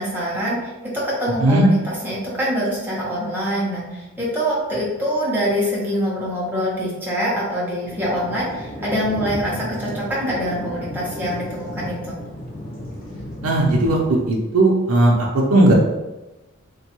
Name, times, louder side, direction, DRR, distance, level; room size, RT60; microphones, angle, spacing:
voice 1, 0.0-1.8 2.0-12.2, equal, 10° right, -7 dB, 0.7 m, -24 dB
Thunder, 7.9-14.2, left 1 dB, 40° left, 0.5 m, -33 dB
voice 2, 13.4-15.7, right 1 dB, 85° right, -2 dB, 0.5 m, -17 dB
2.9 x 2.2 x 2.9 m, 1.1 s
head